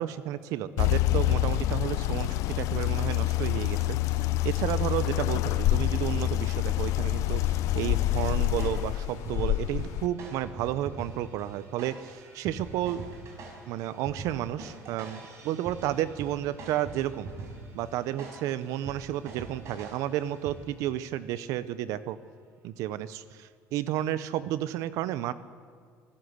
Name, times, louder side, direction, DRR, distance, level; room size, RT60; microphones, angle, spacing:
voice 1, 0.0-4.2 4.4-13.0 13.7-17.3 17.7-22.2 22.6-25.3, right 12 dB, 80° right, 15 dB, 0.8 m, -32 dB
sound 1, 0.8-10.1, left 15 dB, 75° left, 0.5 m, -27 dB
sound 2, 7.8-20.9, right 3 dB, 55° right, 5.4 m, -44 dB
24.5 x 13.0 x 8.1 m, 2.1 s
cardioid pair, 115°, 6 cm